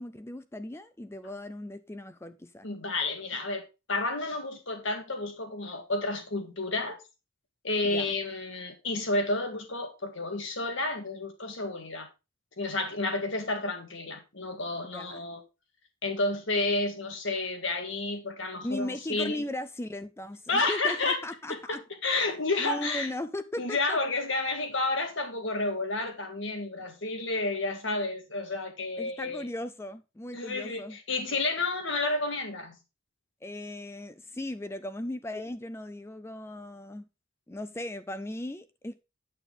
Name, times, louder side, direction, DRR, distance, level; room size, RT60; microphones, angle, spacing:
voice 1, 0.0-2.7 7.8-8.1 14.9-15.3 18.6-21.8 22.6-24.0 29.0-31.0 33.4-37.1 37.5-39.0, left 1 dB, 10° left, 0.4 m, -37 dB
voice 2, 2.6-3.6 3.9-7.0 7.6-12.1 12.6-15.4 16.0-19.4 20.5-21.2 21.5-23.1 23.6-29.4 30.3-32.8, left 2 dB, 65° left, 1.8 m, -31 dB
9.0 x 6.5 x 3.6 m
head